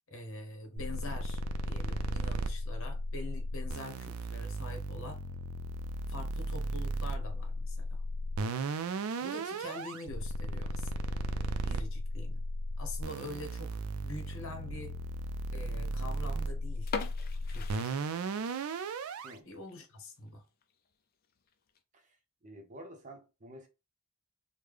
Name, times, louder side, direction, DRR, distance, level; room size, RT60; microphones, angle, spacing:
voice 1, 0.1-5.2 6.1-8.0 9.2-10.9 11.6-12.4 12.8-13.8 14.0-14.9 15.5-17.0 17.5-17.9 19.4-20.4, left 2 dB, 60° left, 0.9 m, -45 dB
sound 1, 0.8-19.3, right 1 dB, 70° right, 0.4 m, -35 dB
sound 2, 16.8-18.7 19.0-19.1 19.7-19.9 20.3-20.4 20.6-20.7 21.5-21.8, left 5 dB, 45° left, 0.4 m, -40 dB
voice 2, 22.4-23.7, right 1 dB, 35° right, 0.7 m, -49 dB
3.2 x 2.1 x 3.4 m
head